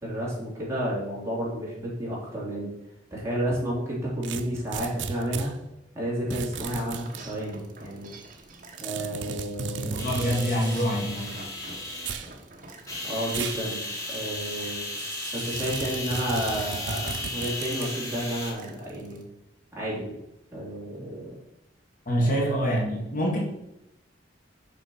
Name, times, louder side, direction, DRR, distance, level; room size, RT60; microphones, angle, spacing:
voice 1, 0.0-2.7 3.1-5.5 5.9-8.1 8.8-10.1 13.0-14.8 15.3-19.2 19.7-20.2 20.5-21.4 22.2-22.3, right 1 dB, 15° right, -6 dB, 3.1 m, -31 dB
sound 1, 4.2-5.5 6.3-7.2 8.8-10.5 12.0-12.3 13.3-13.7 14.1-14.2 15.6-18.0, right 6 dB, 85° right, 0.6 m, -35 dB
sound 2, 6.3-19.2, right 3 dB, 45° right, 1.1 m, -47 dB
voice 2, 9.8-11.4 22.1-23.4, equal, 50° left, -1 dB, 1.7 m, -26 dB
sound 3, 10.0-12.3 12.9-18.5, left 2 dB, 20° left, 1.8 m, -35 dB
6.7 x 5.3 x 5.6 m, 0.87 s
head